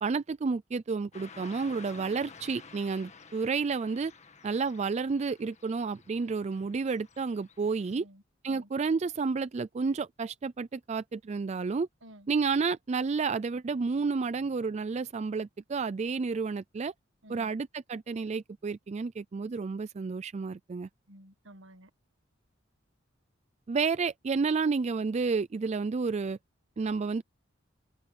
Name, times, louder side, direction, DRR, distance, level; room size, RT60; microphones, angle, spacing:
voice 1, 0.0-4.1 4.4-8.0 8.4-11.9 12.3-16.9 17.3-20.9 23.7-26.4 26.8-27.2, right 4 dB, 35° right, 0.4 m, -31 dB
Car passing by / Traffic noise roadway noise, 1.1-8.0, left 5 dB, 35° left, 1.7 m, -52 dB
voice 2, 7.9-8.7 12.0-12.3 17.2-17.5 21.1-21.9, right 1 dB, 75° right, 1.8 m, -52 dB
head